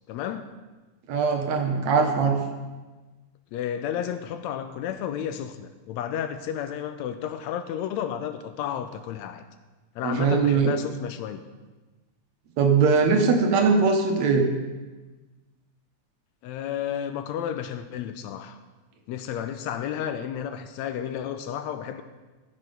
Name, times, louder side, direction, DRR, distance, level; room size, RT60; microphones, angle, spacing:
voice 1, 0.1-0.5 3.5-9.4 9.9-11.4 16.4-18.6 19.1-22.0, left 9 dB, 80° left, 1.8 m, -32 dB
voice 2, 1.1-2.4 10.0-10.7 12.6-14.5, right 5 dB, 70° right, 2.4 m, -21 dB
14.5 x 6.4 x 5.3 m
omnidirectional pair, 3.3 m